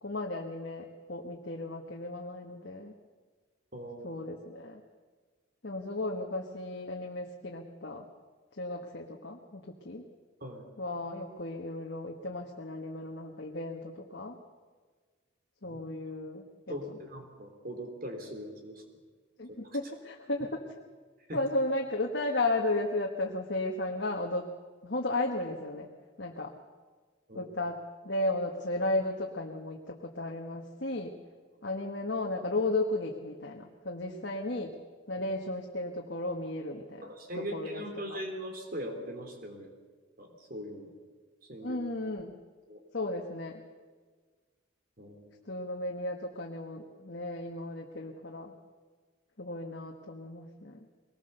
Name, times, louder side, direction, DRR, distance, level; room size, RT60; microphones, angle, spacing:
voice 1, 0.0-2.9 4.0-4.8 5.6-8.1 8.6-10.0 10.8-14.4 15.6-17.0 19.4-20.7 21.3-24.5 24.8-25.9 26.2-26.5 27.3-31.1 31.6-34.8 35.1-37.1 37.4-37.8 38.1-38.2 41.6-42.3 42.9-43.6 45.4-48.5 49.4-50.8, left 2 dB, 55° left, 1 dB, 1.4 m, -34 dB
voice 2, 3.7-4.2 10.4-10.6 15.6-15.8 16.7-18.8 19.6-19.8 21.3-21.4 27.3-27.5 37.0-39.7 40.2-40.9 41.5-41.8 42.7-42.8 45.0-45.4, equal, 45° right, 4 dB, 3.3 m, -40 dB
22.0 x 19.5 x 6.7 m, 1.5 s
head